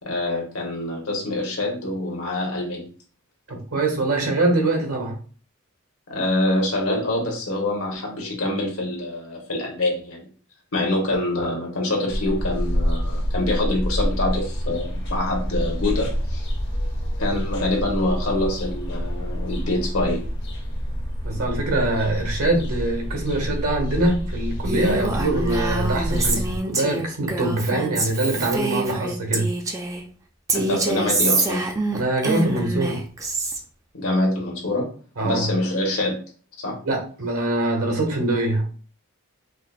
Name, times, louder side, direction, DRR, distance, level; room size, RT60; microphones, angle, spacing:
voice 1, 0.0-2.9 6.1-10.3 10.7-16.5 17.2-20.2 21.4-21.5 30.5-31.6 33.9-34.9 35.2-36.2 36.6-36.8, left 1 dB, 75° left, -1 dB, 1.2 m, -25 dB
voice 2, 3.5-5.2 21.2-29.5 31.9-33.0 35.2-35.5 36.8-38.7, right 2 dB, 85° right, 2 dB, 1.1 m, -23 dB
sound 1, 12.1-26.6, equal, 55° left, 0.7 m, -27 dB
Female speech woman speaking, 24.6-30.0 30.5-33.6, right 3 dB, 15° right, 0.3 m, -26 dB
4.8 x 2.1 x 2.4 m, 0.41 s
head